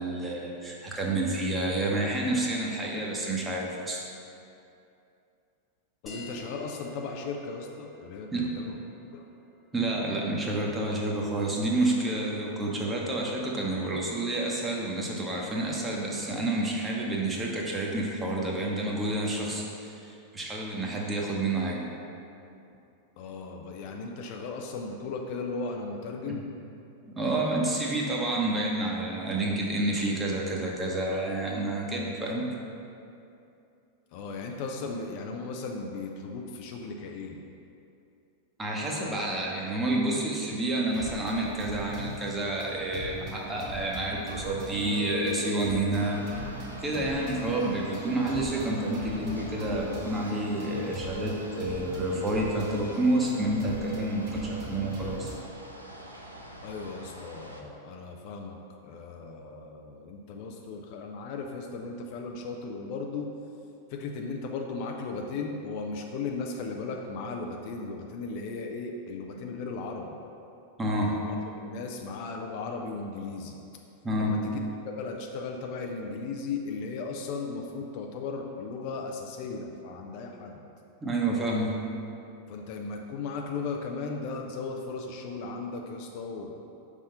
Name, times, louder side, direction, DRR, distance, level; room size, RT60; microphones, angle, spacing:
voice 1, 0.0-4.0 8.3-8.5 9.7-21.8 26.3-26.4 27.1-32.4 38.6-46.2 46.8-55.3 70.8-71.2 74.0-74.3 81.0-81.7, right 1 dB, 15° right, -2 dB, 1.0 m, -29 dB
voice 2, 6.0-8.8 9.1-9.2 23.2-26.5 34.1-37.4 56.6-58.6 58.8-63.3 63.9-70.2 71.0-73.6 74.1-80.6 82.5-86.5, left 4 dB, 45° left, 2 dB, 0.5 m, -36 dB
sound 1, 6.1-11.1, left 2 dB, 15° left, 1.0 m, -49 dB
sound 2, 40.9-55.4, right 2 dB, 35° right, 1.2 m, -40 dB
sound 3, 46.0-57.6, equal, 85° right, 0.6 m, -46 dB
5.4 x 3.6 x 5.5 m, 2.7 s
figure-of-eight pair, 90°, 0 cm